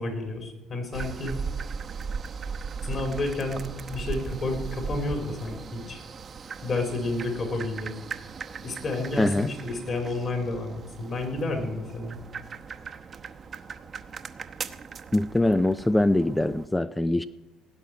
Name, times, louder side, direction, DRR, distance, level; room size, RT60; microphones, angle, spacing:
voice 1, 0.0-1.4 2.8-3.6 3.9-6.0 6.6-8.0 8.6-12.2, left 2 dB, 45° left, 4 dB, 4.1 m, -30 dB
sound 1, 0.9-16.7, right 5 dB, 40° right, 0.9 m, -38 dB
voice 2, 9.2-9.5 15.1-17.2, left 1 dB, 10° left, 13 dB, 0.4 m, -23 dB
17.5 x 6.1 x 9.6 m, 1.0 s
cardioid pair, 105°, 0 cm